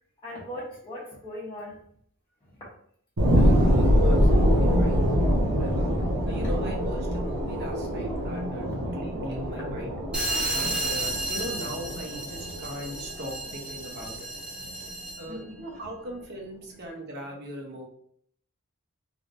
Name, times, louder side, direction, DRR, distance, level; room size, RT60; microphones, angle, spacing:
voice 1, 0.2-1.8 2.4-2.7 6.4-6.5 8.5-8.6 10.3-10.8 13.7-13.8 14.5-16.1 16.6-16.8 17.2-17.3, left 1 dB, 20° left, -10 dB, 1.1 m, -42 dB
sound 1, 3.2-14.2 14.6-14.7, equal, 90° right, 1.0 m, -24 dB
voice 2, 3.3-5.0 5.6-5.9 6.3-10.0 10.5-14.3 15.2-17.9, right 1 dB, 50° right, 0 dB, 0.9 m, -40 dB
sound 2, 10.1-15.4, right 2 dB, 5° right, 0.6 m, -32 dB
3.5 x 3.2 x 2.6 m, 0.64 s
head